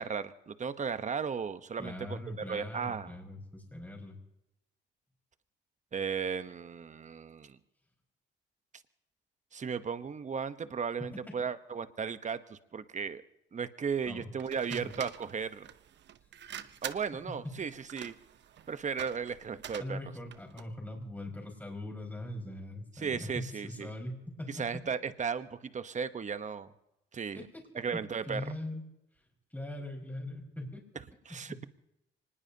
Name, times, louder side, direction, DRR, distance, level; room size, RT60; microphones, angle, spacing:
voice 1, 0.0-2.2 2.5-3.1 5.9-7.6 9.5-13.2 13.5-15.7 16.8-18.1 18.7-20.0 23.0-23.9 24.5-26.7 27.1-27.5 27.7-28.4 31.3-31.6, right 6 dB, 35° right, 11 dB, 1.0 m, -35 dB
voice 2, 1.8-4.2 11.0-11.4 14.0-14.3 14.7-15.0 17.3-17.5 19.8-24.7 27.3-28.8 29.5-30.9 31.3-31.6, left 1 dB, 10° left, 0 dB, 5.1 m, -41 dB
sound 1, 14.4-20.7, right 10 dB, 65° right, 0.9 m, -46 dB
25.0 x 20.0 x 2.9 m, 0.88 s
cardioid pair, 90°, 20 cm